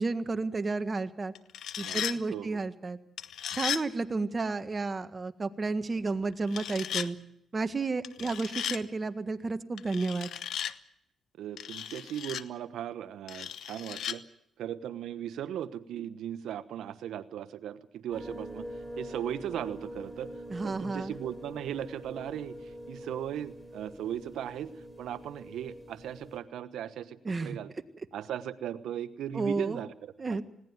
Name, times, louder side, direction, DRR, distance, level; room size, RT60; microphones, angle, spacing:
voice 1, 0.0-1.3 1.8-3.0 3.5-7.2 7.5-10.3 20.5-21.1 27.2-27.6 29.3-29.8 30.2-30.4, right 3 dB, 35° right, 9 dB, 1.7 m, -32 dB
sound 1, 1.4-2.2 3.2-3.8 6.5-7.1 8.0-8.8 9.8-10.7 11.6-12.4 13.3-14.2, left 9 dB, 75° left, 0.9 m, -35 dB
voice 2, 2.3-2.6 11.4-14.2 14.6-18.6 19.0-20.3 20.6-22.6 22.9-24.7 25.0-27.7 28.1-30.4, right 10 dB, 80° right, 13 dB, 1.1 m, -37 dB
sound 2, 18.1-26.4, equal, 5° left, 4.1 m, -44 dB
20.5 x 17.5 x 9.5 m, 0.77 s
cardioid pair, 70°, 0 cm